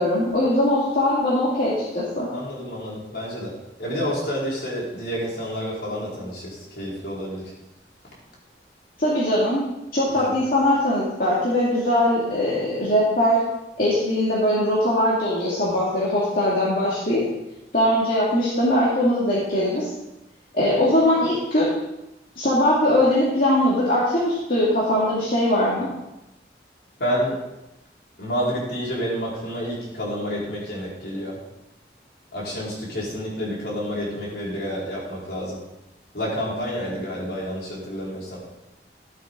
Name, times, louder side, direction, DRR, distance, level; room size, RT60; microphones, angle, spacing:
voice 1, 0.0-2.3 9.0-9.6 9.9-13.4 13.8-17.2 17.7-19.9 20.5-21.7 22.4-25.9, left 1 dB, 50° left, -8 dB, 2.4 m, -21 dB
voice 2, 2.3-7.5 10.1-10.3 27.0-27.4 28.2-31.4 32.3-35.6 36.1-38.4, equal, 65° left, -6 dB, 4.5 m, -29 dB
13.0 x 8.5 x 3.9 m, 0.92 s
head